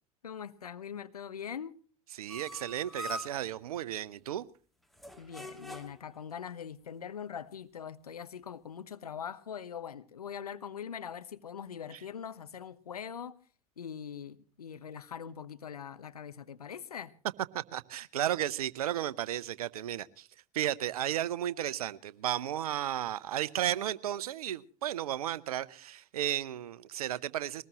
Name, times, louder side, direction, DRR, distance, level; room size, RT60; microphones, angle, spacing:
voice 1, 0.2-1.8 5.2-13.4 13.8-17.1, left 8 dB, 85° left, 1.0 m, -42 dB
voice 2, 2.1-4.5 17.5-20.3 20.5-27.6, right 12 dB, 75° right, 0.8 m, -34 dB
sound 1, 2.3-3.5 4.9-6.1, left 1 dB, ahead, 2.8 m, -43 dB
22.5 x 19.0 x 3.0 m
hypercardioid pair, 80°, 19 cm